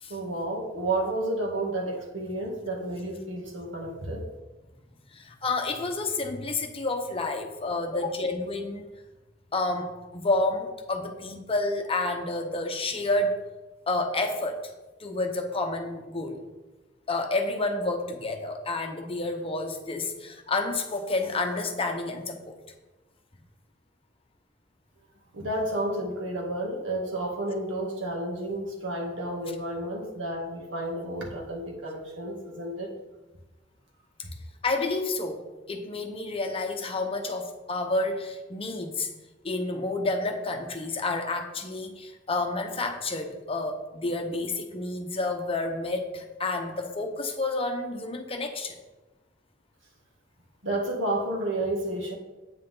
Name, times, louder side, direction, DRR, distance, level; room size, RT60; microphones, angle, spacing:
voice 1, 0.1-4.3 25.3-32.9 50.6-52.1, right 1 dB, 80° right, 0 dB, 2.1 m, -31 dB
voice 2, 5.1-8.8 9.5-13.4 13.9-14.7 15.0-16.4 17.1-22.6 34.6-35.4 35.7-39.1 39.4-48.8, left 2 dB, 30° left, 4 dB, 1.0 m, -29 dB
9.3 x 8.8 x 3.9 m, 1.2 s
head